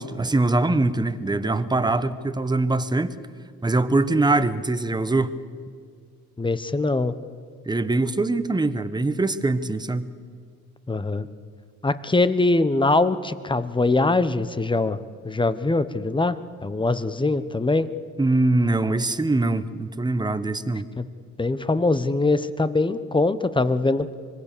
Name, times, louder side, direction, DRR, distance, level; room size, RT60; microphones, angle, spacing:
voice 1, 0.0-3.1 3.6-5.4 7.6-10.1 18.2-20.9, right 2 dB, 15° right, 12 dB, 1.2 m, -23 dB
voice 2, 6.4-7.1 10.9-11.3 11.8-15.0 15.2-17.9 21.0-21.1 21.4-24.1, left 2 dB, 15° left, 13 dB, 1.1 m, -22 dB
25.5 x 21.0 x 6.9 m, 2.1 s
cardioid pair, 90°, 30 cm